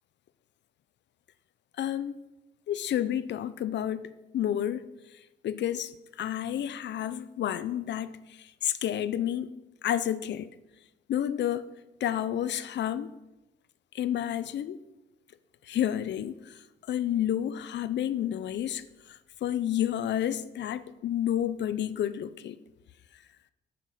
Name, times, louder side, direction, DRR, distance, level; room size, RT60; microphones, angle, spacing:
voice 1, 1.8-2.1 2.7-4.9 5.4-5.9 6.2-9.5 9.8-10.5 11.1-11.7 12.0-13.1 13.9-14.8 15.7-16.6 16.9-22.6, left 11 dB, 65° left, 0.6 m, -30 dB
9.2 x 5.8 x 6.6 m
cardioid pair, 90°, 20 cm